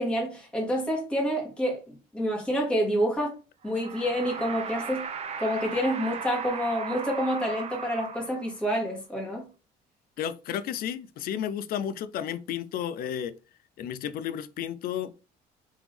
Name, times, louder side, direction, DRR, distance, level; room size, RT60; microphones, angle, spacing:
voice 1, 0.0-3.3 3.6-5.0 5.4-9.5, equal, 5° left, 1.6 m, -28 dB
sound 1, 3.6-8.7, right 6 dB, 40° right, 0.6 m, -37 dB
voice 2, 10.2-13.4 13.8-15.1, left 9 dB, 60° left, 0.4 m, -32 dB
3.5 x 3.0 x 3.3 m
cardioid pair, 110°, 17 cm